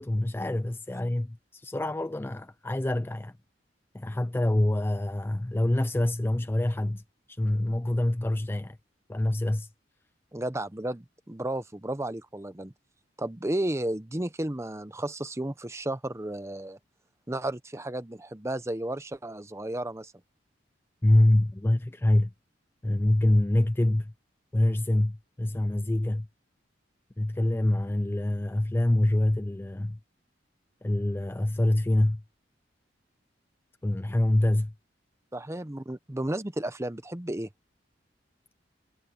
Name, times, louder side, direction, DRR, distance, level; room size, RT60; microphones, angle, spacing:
voice 1, 0.0-3.3 3.9-7.0 7.3-8.8 9.1-9.7 21.0-22.3 22.8-24.1 24.5-26.3 27.2-30.0 30.8-32.2 33.8-34.7, left 1 dB, 10° left, 0.4 m, -25 dB
voice 2, 10.3-12.7 13.2-16.8 17.3-20.1 35.3-37.5, right 1 dB, 15° right, 0.8 m, -33 dB
head